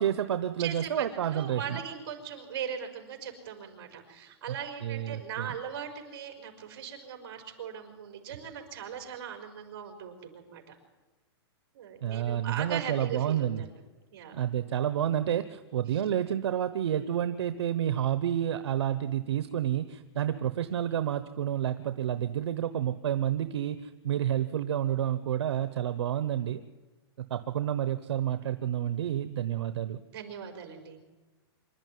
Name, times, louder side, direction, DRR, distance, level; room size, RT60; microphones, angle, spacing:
voice 1, 0.0-1.8 4.8-5.5 12.0-13.6 14.3-26.6 27.3-30.0, right 10 dB, 85° right, 11 dB, 1.0 m, -29 dB
voice 2, 0.6-10.8 11.7-13.7 14.1-14.3 15.9-16.0 30.1-31.0, right 8 dB, 50° right, 4 dB, 4.9 m, -39 dB
26.0 x 12.0 x 9.4 m, 1.2 s
supercardioid pair, 165°, 14 cm